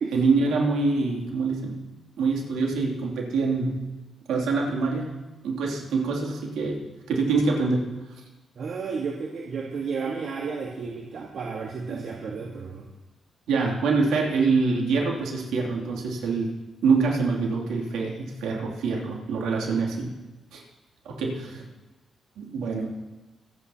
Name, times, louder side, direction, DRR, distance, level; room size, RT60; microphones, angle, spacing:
voice 1, 0.1-1.8 2.2-3.8 4.3-5.1 5.4-6.8 7.1-7.8 11.9-12.0 13.5-16.5 16.8-20.1 20.5-20.6 21.0-21.6 22.4-23.0, right 4 dB, 85° right, -2 dB, 2.7 m, -25 dB
voice 2, 8.6-12.9 19.6-19.8 21.3-21.4, right 5 dB, 70° right, 0 dB, 1.4 m, -32 dB
25.0 x 8.5 x 2.9 m, 1.1 s
supercardioid pair, 50°, 0 cm